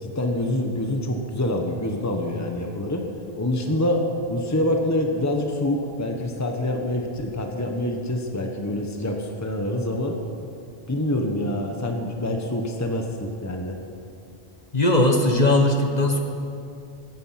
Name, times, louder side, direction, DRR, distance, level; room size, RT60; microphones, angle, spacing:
voice 1, 0.0-3.1 3.3-10.2 10.9-13.8, left 1 dB, 15° left, 3 dB, 1.2 m, -26 dB
voice 2, 14.7-16.2, left 1 dB, 40° left, 3 dB, 1.4 m, -19 dB
15.5 x 15.0 x 5.9 m, 2.5 s
omnidirectional pair, 1.1 m